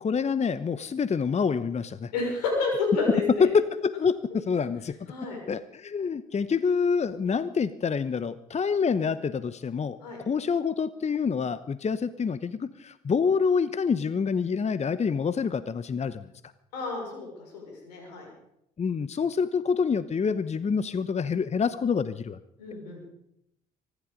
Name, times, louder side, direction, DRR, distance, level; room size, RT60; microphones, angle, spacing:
voice 1, 0.0-2.1 3.4-5.0 5.5-10.0 10.2-16.3 18.8-22.4, left 5 dB, 35° left, 15 dB, 0.9 m, -27 dB
voice 2, 2.1-3.5 5.1-5.4 10.0-10.2 16.7-18.3 22.6-23.0, left 3 dB, 85° left, 1 dB, 5.7 m, -30 dB
24.5 x 11.5 x 5.2 m, 0.78 s
hypercardioid pair, 55°, 20 cm